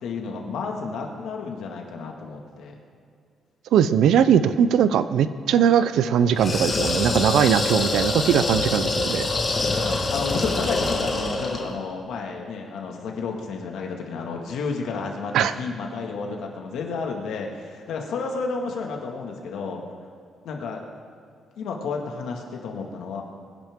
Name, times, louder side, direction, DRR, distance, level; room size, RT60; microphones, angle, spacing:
voice 1, 0.0-2.8 7.8-7.9 9.8-19.8 20.4-20.8 21.6-23.2, left 4 dB, 75° left, 1 dB, 2.0 m, -31 dB
voice 2, 3.7-9.3 15.3-15.5, right 8 dB, 75° right, 13 dB, 0.6 m, -20 dB
sound 1, 6.3-11.7, left 3 dB, 25° left, 1.7 m, -25 dB
22.5 x 10.0 x 3.7 m, 2.3 s
cardioid pair, 175°, 0 cm